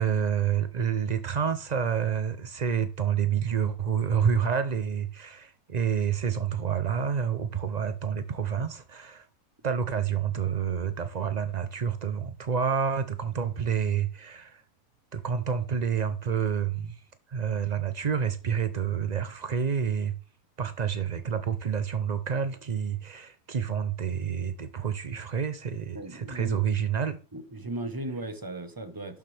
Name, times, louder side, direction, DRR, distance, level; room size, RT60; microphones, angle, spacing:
voice 1, 0.0-9.3 9.6-14.6 15.1-16.9 17.3-20.1 20.6-27.2, right 7 dB, 80° right, 0.3 m, -28 dB
voice 2, 25.9-26.6 27.3-29.2, right 2 dB, 15° right, 0.9 m, -36 dB
11.5 x 7.2 x 3.4 m
omnidirectional pair, 1.7 m